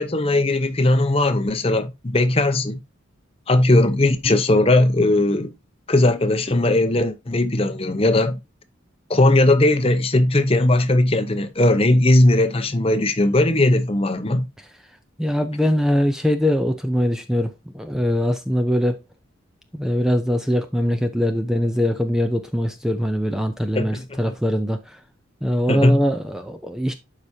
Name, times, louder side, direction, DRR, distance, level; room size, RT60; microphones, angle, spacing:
voice 1, 0.0-2.8 3.5-5.5 5.9-8.4 9.1-14.5 23.7-24.2 25.7-26.0, left 1 dB, 30° left, 0.8 m, -18 dB
voice 2, 15.2-19.0 19.7-25.0 25.4-26.9, equal, 5° right, 0.5 m, -22 dB
12.0 x 5.0 x 2.8 m
head